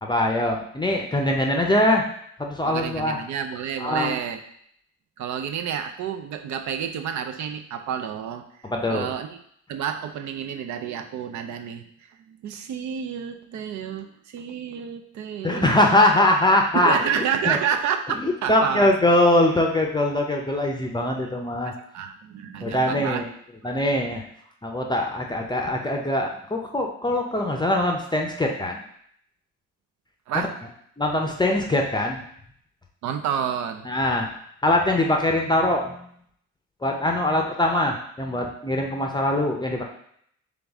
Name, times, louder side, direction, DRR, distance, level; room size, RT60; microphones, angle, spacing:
voice 1, 0.0-2.0 2.4-3.2 3.8-4.1 8.6-9.1 15.4-17.0 17.4-17.6 18.2-21.7 22.6-23.3 23.6-24.2 24.6-28.8 30.3-30.5 31.0-32.2 33.8-34.3 34.6-36.0 36.8-39.8, left 1 dB, 15° left, 1 dB, 0.5 m, -22 dB
voice 2, 2.6-4.4 5.2-8.4 8.9-9.4 9.7-11.9 12.3-15.8 16.7-18.9 21.2-21.3 21.9-23.2 23.6-23.7 24.0-24.1 30.3-30.5 33.0-33.9, right 8 dB, 70° right, 7 dB, 0.6 m, -29 dB
3.9 x 3.5 x 3.5 m, 0.68 s
cardioid pair, 90°, 30 cm